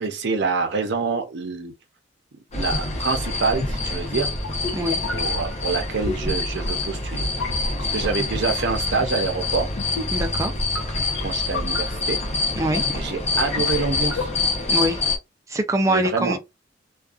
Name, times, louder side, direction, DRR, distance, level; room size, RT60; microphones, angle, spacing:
voice 1, 0.0-1.7 2.5-4.3 5.1-7.3 7.8-9.7 11.2-12.2 12.9-14.3 15.9-16.4, right 4 dB, 60° right, 0.6 m, -26 dB
sound 1, 2.5-15.2, left 3 dB, 35° left, 0.6 m, -26 dB
sound 2, 2.6-14.7, left 2 dB, 80° left, 0.6 m, -33 dB
voice 2, 4.7-5.0 10.1-10.5 12.6-12.9 14.7-15.0 15.5-16.4, right 1 dB, 15° right, 0.4 m, -23 dB
2.5 x 2.2 x 2.3 m
head